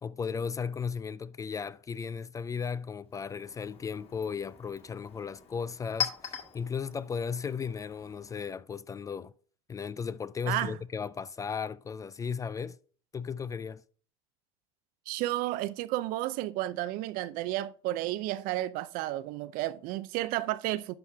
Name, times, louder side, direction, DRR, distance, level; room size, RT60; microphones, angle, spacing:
voice 1, 0.0-9.3 9.7-12.8 13.1-13.8, left 6 dB, 20° left, 0.3 m, -35 dB
Chink clink, 3.1-8.6, left 7 dB, 35° left, 2.0 m, -41 dB
voice 2, 10.5-10.8 15.1-20.9, right 16 dB, 60° right, 0.6 m, -32 dB
11.0 x 5.5 x 3.5 m
supercardioid pair, 110°, 17 cm